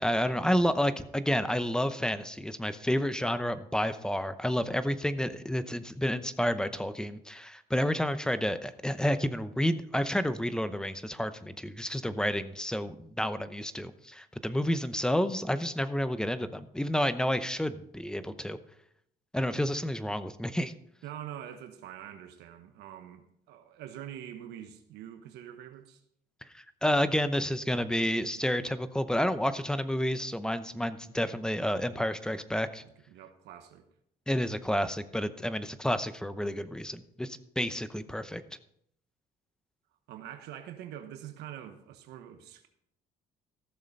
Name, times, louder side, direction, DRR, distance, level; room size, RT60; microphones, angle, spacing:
voice 1, 0.0-18.6 19.3-20.7 26.5-32.8 34.3-38.4, equal, 5° left, 0.7 m, -30 dB
voice 2, 21.0-26.0 32.8-33.9 40.1-42.7, right 10 dB, 85° right, 1.2 m, -45 dB
14.5 x 6.7 x 5.3 m
cardioid pair, 110°, 17 cm